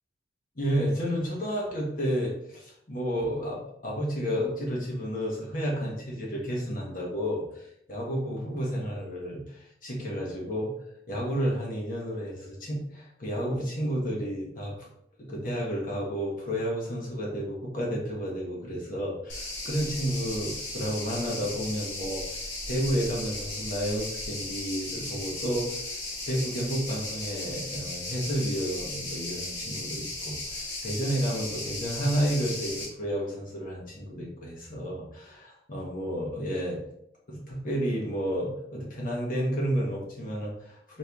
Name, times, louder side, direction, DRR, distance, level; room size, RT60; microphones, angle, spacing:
voice 1, 0.5-10.7 11.1-14.9 15.2-25.9 26.3-36.8 37.3-41.0, equal, 50° left, -3 dB, 1.1 m, -31 dB
Italien - Sommertag - Toskana - Zikaden, 19.3-32.9, left 2 dB, 85° left, 1.7 m, -36 dB
4.4 x 3.3 x 3.4 m, 0.74 s
head